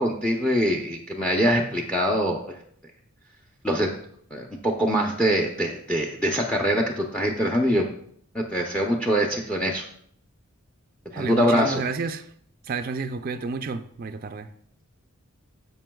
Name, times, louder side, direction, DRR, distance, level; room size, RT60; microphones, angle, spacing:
voice 1, 0.0-2.6 3.6-3.9 4.3-7.9 8.3-9.9 11.1-11.8, equal, 5° left, 0.6 m, -23 dB
voice 2, 11.1-12.3 12.6-14.5, right 4 dB, 40° right, 0.4 m, -30 dB
15.0 x 5.3 x 2.3 m
head